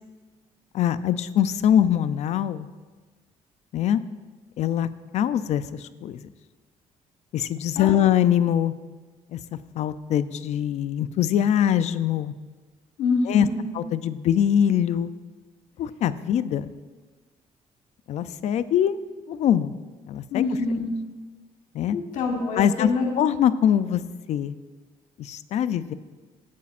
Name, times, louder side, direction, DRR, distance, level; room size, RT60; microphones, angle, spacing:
voice 1, 0.7-2.7 3.7-4.0 4.6-4.9 5.1-6.3 7.3-8.7 9.3-12.3 13.3-13.5 13.8-15.1 15.8-16.7 18.1-19.0 19.3-19.7 20.1-20.4 21.7-22.0 22.6-22.9 23.2-24.0 24.3-24.5 25.2-25.9, left 10 dB, 60° left, 14 dB, 0.5 m, -23 dB
voice 2, 13.0-13.6 20.3-20.9 21.9-23.1, left 4 dB, 85° left, 1 dB, 1.4 m, -26 dB
18.0 x 8.5 x 2.5 m, 1.4 s
cardioid pair, 130°, 13 cm